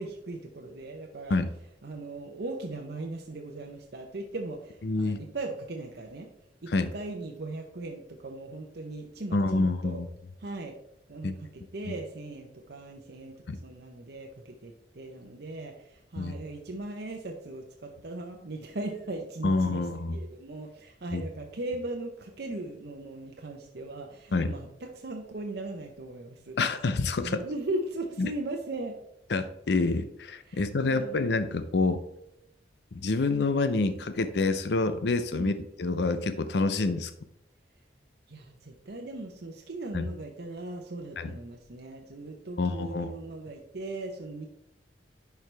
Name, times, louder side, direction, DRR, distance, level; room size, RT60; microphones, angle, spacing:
voice 1, 0.0-1.4 1.8-6.3 6.6-10.0 10.4-10.8 11.1-26.6 27.2-29.0 30.5-31.2 35.3-35.5 38.3-44.5, right 2 dB, 65° right, 2 dB, 0.8 m, -38 dB
voice 2, 4.9-5.2 6.7-6.9 9.3-10.1 11.2-11.3 13.5-13.6 16.2-16.3 19.4-20.2 21.1-21.2 24.3-24.5 26.6-27.4 28.2-28.3 29.3-32.0 32.9-37.1 39.9-40.0 41.2-41.3 42.6-43.2, left 3 dB, 70° left, 11 dB, 0.5 m, -27 dB
10.5 x 4.7 x 3.3 m, 0.82 s
head